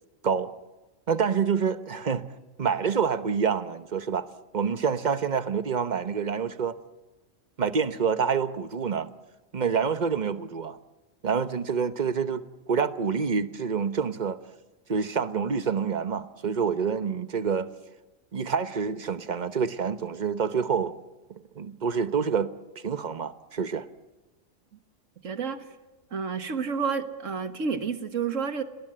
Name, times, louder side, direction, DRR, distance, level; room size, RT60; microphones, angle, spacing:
voice 1, 1.1-2.2 2.6-4.3 4.5-6.8 7.6-9.1 9.5-10.8 11.2-12.4 12.7-14.4 14.9-17.7 18.3-20.9 21.6-23.9, right 6 dB, 40° right, 1.1 m, -27 dB
voice 2, 25.2-25.6 26.1-28.6, right 5 dB, 85° right, 1.9 m, -30 dB
30.0 x 20.0 x 7.8 m
omnidirectional pair, 1.3 m